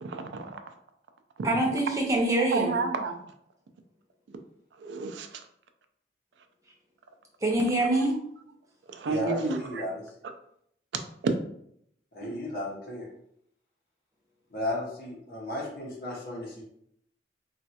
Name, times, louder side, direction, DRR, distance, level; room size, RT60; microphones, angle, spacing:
voice 1, 0.0-0.7 1.4-1.5 2.5-3.2 4.8-5.4 8.9-9.8 11.2-11.3 12.2-12.4, right 4 dB, 90° right, 7 dB, 0.4 m, -31 dB
voice 2, 1.4-2.7 7.4-8.2, right 1 dB, 20° right, -1 dB, 0.6 m, -25 dB
voice 3, 9.1-10.0 12.1-13.1 14.5-16.6, left 1 dB, 55° left, -4 dB, 0.7 m, -34 dB
3.1 x 2.3 x 2.7 m, 0.71 s
head